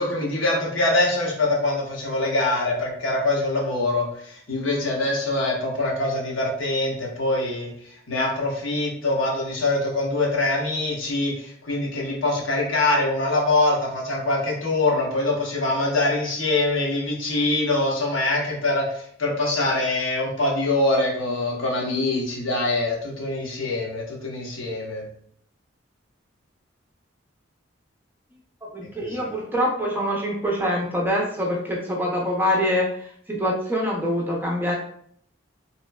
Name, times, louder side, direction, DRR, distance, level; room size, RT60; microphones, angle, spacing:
voice 1, 0.0-7.7 8.1-25.0 29.0-29.3, left 2 dB, 80° left, -3 dB, 1.0 m, -24 dB
voice 2, 28.7-34.7, equal, 10° right, -2 dB, 0.5 m, -25 dB
3.0 x 3.0 x 2.2 m, 0.64 s
head